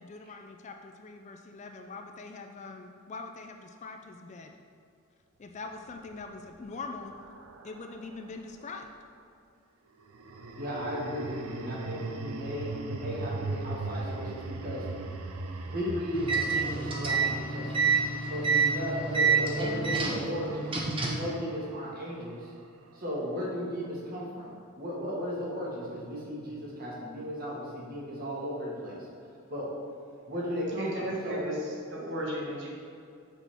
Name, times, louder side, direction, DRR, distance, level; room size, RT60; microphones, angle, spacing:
voice 1, 0.0-4.6 5.4-7.1 7.6-8.9, left 3 dB, 35° left, 4 dB, 0.3 m, -43 dB
sound 1, 5.9-8.4 10.0-22.3, right 3 dB, 85° right, 0.5 m, -40 dB
voice 2, 10.5-14.9 15.7-17.9 18.3-22.5 22.9-29.1 29.5-29.7 30.3-31.5, equal, 40° right, -5 dB, 1.6 m, -35 dB
sound 2, 16.1-21.3, right 5 dB, 25° right, 0.7 m, -28 dB
voice 3, 30.8-32.7, right 1 dB, 60° right, -3 dB, 1.2 m, -34 dB
6.1 x 5.8 x 3.4 m, 2.5 s
head